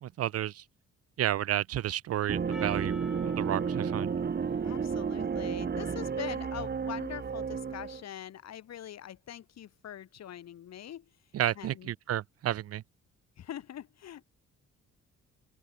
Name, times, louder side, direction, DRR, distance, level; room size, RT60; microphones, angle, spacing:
voice 1, 0.0-0.6 1.2-4.1 11.3-12.8, right 12 dB, 55° right, 0.5 m, -31 dB
sound 1, 2.3-8.0, right 6 dB, 35° right, 1.3 m, -32 dB
Percussion, 2.5-7.1, equal, ahead, 5.4 m, -52 dB
voice 2, 4.6-11.1 11.5-11.9 13.4-14.2, left 10 dB, 60° left, 1.6 m, -43 dB
open air
cardioid pair, 90°, 30 cm